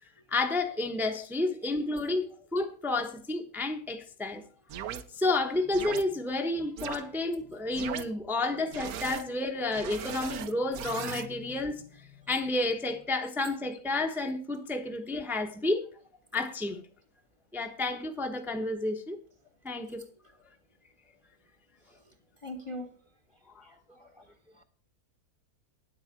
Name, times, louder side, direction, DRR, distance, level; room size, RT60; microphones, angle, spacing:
voice 1, 0.3-4.4 5.1-15.8 16.3-16.8 17.5-19.2 19.6-20.0 23.5-23.6, left 2 dB, ahead, 0.9 m, -31 dB
voice 2, 2.7-3.2 7.8-7.9 12.3-12.4 13.9-14.0 20.0-20.1 21.9-22.1 22.4-23.0 23.6-24.6, left 1 dB, 25° left, 0.9 m, -46 dB
sound 1, 4.7-5.0 5.7-6.0 6.8-7.0 7.7-8.0 8.7-9.2 9.7-11.3, right 9 dB, 80° right, 1.2 m, -38 dB
9.9 x 8.1 x 6.0 m
omnidirectional pair, 1.6 m